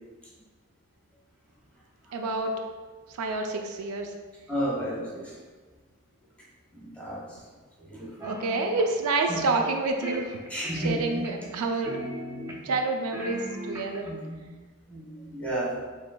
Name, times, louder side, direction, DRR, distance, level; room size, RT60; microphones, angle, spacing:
voice 1, 2.1-2.5 3.2-4.1 8.2-10.4 10.7-11.9 12.6-13.4 13.7-14.1, right 3 dB, 80° right, 4 dB, 0.4 m, -28 dB
voice 2, 4.5-5.3 6.7-7.4 7.8-8.1 9.3-9.4 10.5-11.3 14.0-14.4 14.9-15.8, right 1 dB, 5° left, -6 dB, 1.0 m, -32 dB
sound 1, 8.2-8.9 9.4-9.7 10.0-11.6 11.9-12.8 13.1-14.1, right 1 dB, 15° right, 0.4 m, -38 dB
5.0 x 3.5 x 2.3 m, 1.4 s
head